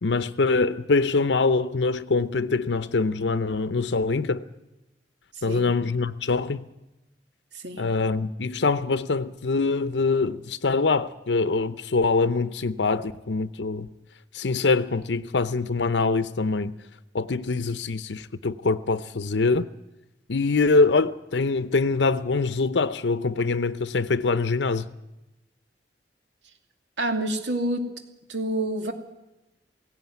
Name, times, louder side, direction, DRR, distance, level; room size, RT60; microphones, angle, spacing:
voice 1, 0.0-4.4 5.4-6.6 7.8-13.9 14.3-16.7 17.1-19.7 20.3-24.9, left 3 dB, 85° left, 0.7 m, -24 dB
voice 2, 7.5-7.9 27.0-27.9 28.3-28.9, right 1 dB, 85° right, 2.7 m, -28 dB
17.5 x 17.0 x 9.3 m
head